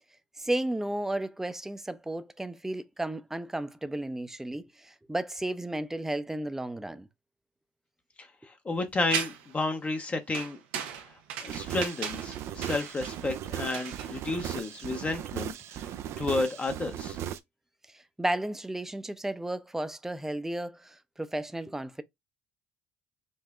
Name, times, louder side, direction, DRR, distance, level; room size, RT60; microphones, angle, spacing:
voice 1, 0.4-7.1 17.9-22.0, right 1 dB, 5° right, 0.5 m, -33 dB
voice 2, 8.2-10.6 11.4-15.9 16.2-17.2, left 3 dB, 25° left, 0.7 m, -32 dB
sound 1, 9.1-9.6 10.3-14.9, right 8 dB, 85° right, 0.8 m, -37 dB
sound 2, 11.5-17.4, right 10 dB, 55° right, 0.4 m, -37 dB
5.4 x 2.1 x 2.4 m
supercardioid pair, 80°, 5 cm